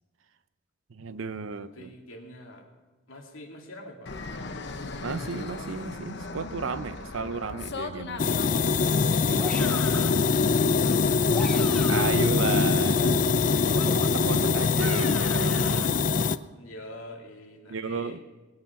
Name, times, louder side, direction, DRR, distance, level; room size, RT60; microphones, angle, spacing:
voice 1, 0.9-1.9 5.0-8.3 9.2-9.8 11.9-13.2 13.7-16.1 17.7-18.2, right 4 dB, 75° right, 13 dB, 0.6 m, -34 dB
voice 2, 1.5-2.7 3.1-4.9 10.6-12.1 13.5-14.1 16.5-18.2, left 1 dB, 75° left, 1 dB, 2.5 m, -45 dB
Fixed-wing aircraft airplane, 4.1-9.2, left 3 dB, 55° left, 1.0 m, -38 dB
sound 1, 8.2-16.4, left 4 dB, 40° left, 0.4 m, -23 dB
sound 2, 9.4-10.2 11.1-12.3 13.7-15.9, equal, 5° left, 1.2 m, -39 dB
20.5 x 8.9 x 5.9 m, 1.2 s
head